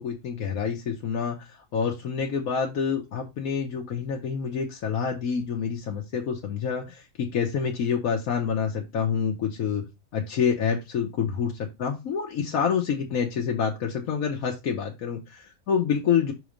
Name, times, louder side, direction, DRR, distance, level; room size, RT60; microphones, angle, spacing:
voice 1, 0.0-9.8 10.1-11.5 11.8-16.3, left 7 dB, 85° left, 0 dB, 1.4 m, -27 dB
6.1 x 3.2 x 5.0 m, 0.23 s
omnidirectional pair, 1.5 m